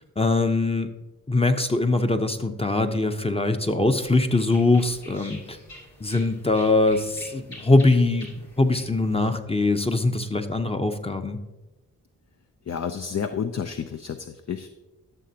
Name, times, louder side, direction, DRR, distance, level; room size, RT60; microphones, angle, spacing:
voice 1, 0.2-0.9 1.3-5.6 6.0-8.3 8.6-11.4, left 2 dB, 15° left, 7 dB, 0.8 m, -22 dB
sound 1, 4.0-9.3, left 1 dB, 85° left, 2.8 m, -46 dB
voice 2, 12.7-14.7, left 7 dB, 45° left, 7 dB, 0.6 m, -30 dB
13.0 x 6.6 x 2.9 m, 1.1 s
supercardioid pair, 40°, 39 cm